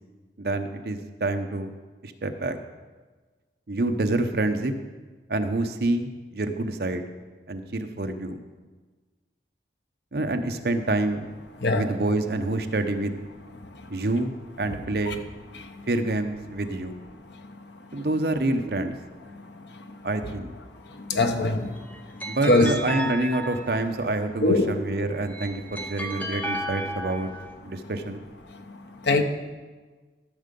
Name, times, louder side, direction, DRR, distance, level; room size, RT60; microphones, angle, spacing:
voice 1, 0.4-1.7 2.0-2.6 3.7-4.7 5.3-7.0 7.5-8.4 10.1-11.3 11.7-13.2 13.9-14.3 14.6-15.2 15.9-17.0 17.9-18.9 20.0-20.5 22.3-27.3 27.6-28.2, right 2 dB, 60° right, 7 dB, 0.7 m, -27 dB
voice 2, 11.6-11.9 13.6-14.0 15.1-15.2 15.5-15.8 17.4-17.6 17.9-18.1 19.7-19.8 20.9-21.8 22.1-22.7 24.4-24.7 28.5-28.8 29.0-29.2, left 2 dB, 80° left, 6 dB, 1.0 m, -24 dB
sound 1, 21.7-24.2 25.1-27.5, right 1 dB, 10° left, 0.8 m, -34 dB
13.5 x 6.6 x 5.3 m, 1.3 s
head